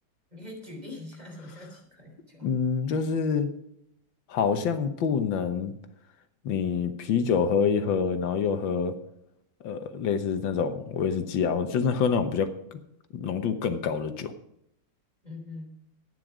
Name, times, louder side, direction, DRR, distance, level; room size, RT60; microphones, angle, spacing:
voice 1, 0.3-2.5 15.2-15.7, left 2 dB, 20° right, 1 dB, 3.4 m, -43 dB
voice 2, 2.4-3.5 4.3-5.7 6.5-8.9 9.6-12.8 13.1-14.3, left 6 dB, 85° left, 9 dB, 1.8 m, -26 dB
12.0 x 9.5 x 4.9 m, 0.78 s
omnidirectional pair, 2.0 m